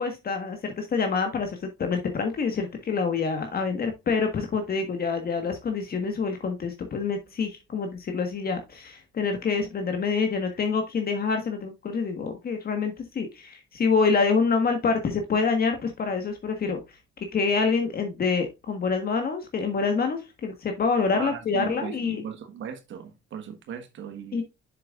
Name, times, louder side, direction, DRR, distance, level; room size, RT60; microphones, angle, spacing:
voice 1, 0.0-16.8 17.3-22.2 24.3-24.4, left 5 dB, 50° left, 1.5 m, -26 dB
voice 2, 21.1-24.4, right 7 dB, 70° right, 1.2 m, -37 dB
7.2 x 6.7 x 2.4 m
cardioid pair, 90°, 20 cm